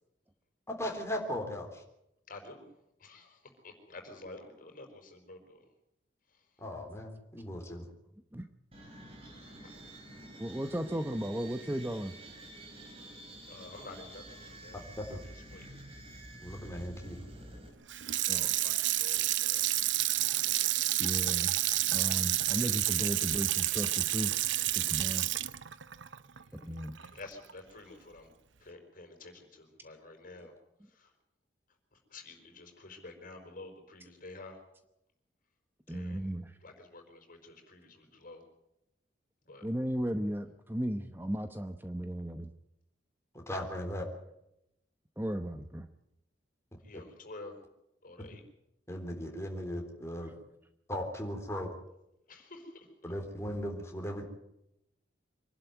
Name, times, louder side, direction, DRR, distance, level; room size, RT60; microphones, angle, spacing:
voice 1, 0.7-1.7 6.6-7.9 15.0-15.2 16.4-17.2 43.3-44.1 48.9-50.3 50.9-51.7 53.0-54.2, equal, 15° left, 2 dB, 3.7 m, -37 dB
voice 2, 2.3-2.7 3.0-5.6 6.3-6.5 9.6-9.8 13.5-14.8 15.1-15.8 18.1-19.7 20.2-21.3 26.4-28.3 28.6-30.6 30.9-31.1 31.9-34.6 35.9-36.3 36.6-38.4 39.4-39.7 46.8-47.6 48.0-48.4 52.3-53.1, left 2 dB, 50° left, 5 dB, 4.7 m, -50 dB
sound 1, 8.7-17.7, right 1 dB, 35° right, 4.6 m, -49 dB
voice 3, 10.4-12.1 18.3-18.5 21.0-21.5 21.9-24.3 24.7-25.3 26.6-27.0 35.9-36.5 39.6-42.5 45.2-45.9 50.2-50.3, right 1 dB, 10° right, 8 dB, 0.9 m, -35 dB
Water tap faucet / Sink (filling or washing), 17.9-27.1 27.5-27.6, right 15 dB, 85° right, 0.7 m, -30 dB
25.0 x 12.0 x 9.3 m, 0.83 s
head